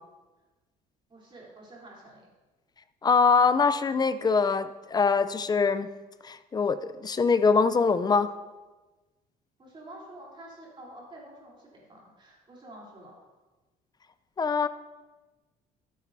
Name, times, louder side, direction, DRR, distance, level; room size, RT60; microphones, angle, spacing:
voice 1, 1.1-2.3 9.6-13.1, right 1 dB, 30° right, -4 dB, 3.4 m, -48 dB
voice 2, 3.0-5.9 6.2-8.3 14.4-14.7, left 5 dB, 25° left, 12 dB, 0.5 m, -23 dB
12.5 x 9.4 x 2.7 m, 1.2 s
cardioid pair, 110°, 17 cm